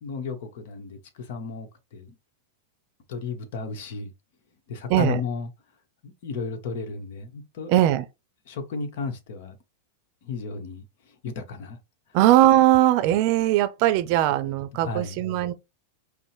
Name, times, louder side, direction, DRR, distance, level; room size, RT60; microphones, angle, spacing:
voice 1, 0.0-2.2 3.1-4.1 4.7-5.5 6.0-7.7 8.5-9.6 10.2-11.8 14.4-15.2, left 5 dB, 65° left, 1.0 m, -34 dB
voice 2, 4.9-5.2 7.7-8.0 12.1-15.5, right 13 dB, 55° right, 0.6 m, -20 dB
5.3 x 2.1 x 3.2 m
hypercardioid pair, 115°, 0 cm